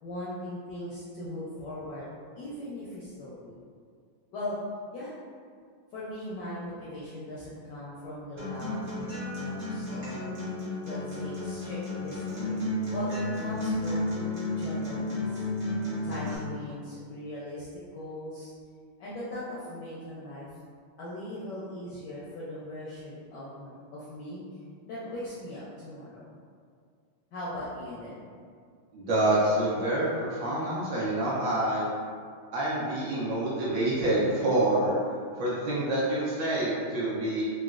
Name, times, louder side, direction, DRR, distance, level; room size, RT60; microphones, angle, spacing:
voice 1, 0.0-2.1 2.4-3.5 4.3-4.6 4.9-5.1 5.9-10.3 10.8-14.1 14.6-15.4 16.0-17.7 17.9-18.5 19.0-20.5 21.0-24.4 24.8-26.3 27.3-28.2, left 1 dB, 75° left, -8 dB, 1.0 m, -39 dB
Acoustic guitar, 8.4-16.4, left 2 dB, 90° right, 0.5 m, -32 dB
voice 2, 28.9-31.8 32.5-37.4, right 1 dB, 75° right, -8 dB, 1.1 m, -27 dB
3.8 x 2.1 x 2.3 m, 2.1 s
omnidirectional pair, 2.4 m